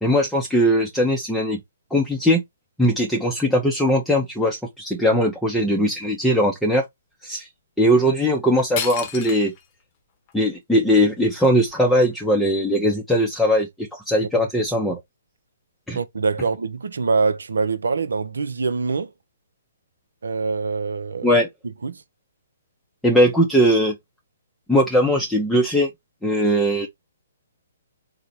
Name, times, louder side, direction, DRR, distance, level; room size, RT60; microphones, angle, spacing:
voice 1, 0.0-1.6 1.9-2.4 2.8-6.8 7.2-7.5 7.8-9.5 10.3-15.0 15.9-16.0 21.2-21.5 23.0-23.9 24.7-25.9 26.2-26.9, equal, 5° left, 0.7 m, -20 dB
sound 1, 8.3-8.4 8.7-9.7 10.3-10.4 10.9-12.3, left 8 dB, 35° left, 0.8 m, -33 dB
voice 2, 15.9-19.1 20.2-21.4 21.8-22.0, right 4 dB, 70° right, 0.6 m, -24 dB
3.8 x 2.1 x 4.2 m
figure-of-eight pair, 130°, 0 cm